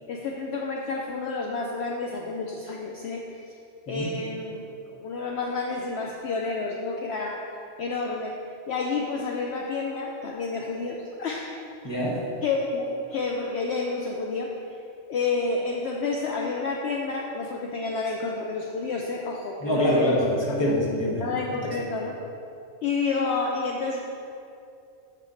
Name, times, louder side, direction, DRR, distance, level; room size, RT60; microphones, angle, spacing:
voice 1, 0.1-3.2 3.9-4.6 4.9-7.5 7.8-8.4 8.7-11.6 12.4-14.5 15.1-20.1 21.2-22.2 22.8-24.0, left 4 dB, 65° left, 0 dB, 0.8 m, -29 dB
voice 2, 11.8-12.2 19.6-21.7, equal, 20° left, -4 dB, 1.1 m, -25 dB
7.4 x 5.6 x 3.8 m, 2.6 s
omnidirectional pair, 1.3 m